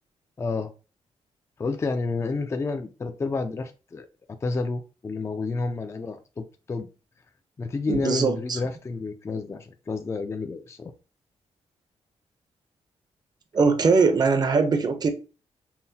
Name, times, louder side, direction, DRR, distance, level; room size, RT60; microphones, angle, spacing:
voice 1, 0.4-0.7 1.6-4.1 4.4-6.9 7.6-10.9, left 3 dB, 25° left, 0.3 m, -30 dB
voice 2, 7.9-8.6 13.5-15.1, right 4 dB, 40° right, 0.6 m, -21 dB
5.6 x 2.1 x 2.7 m
cardioid pair, 110°, 11 cm